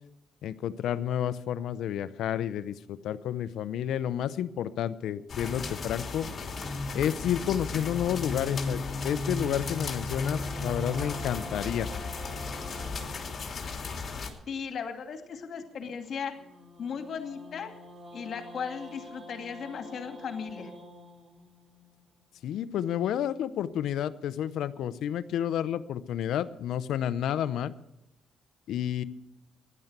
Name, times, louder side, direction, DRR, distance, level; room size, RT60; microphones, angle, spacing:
voice 1, 0.4-6.3 6.9-11.9 22.4-27.7 28.7-29.0, left 10 dB, 80° left, 14 dB, 0.7 m, -30 dB
sound 1, 5.3-14.3, left 3 dB, 40° left, 3.1 m, -34 dB
sound 2, 10.0-14.2 16.3-22.5, equal, 35° right, 2.7 m, -48 dB
voice 2, 14.5-16.3 16.8-17.7 18.1-20.7, left 6 dB, 60° left, 4 dB, 2.5 m, -36 dB
15.0 x 11.0 x 6.8 m, 0.89 s
cardioid pair, 90°, 0 cm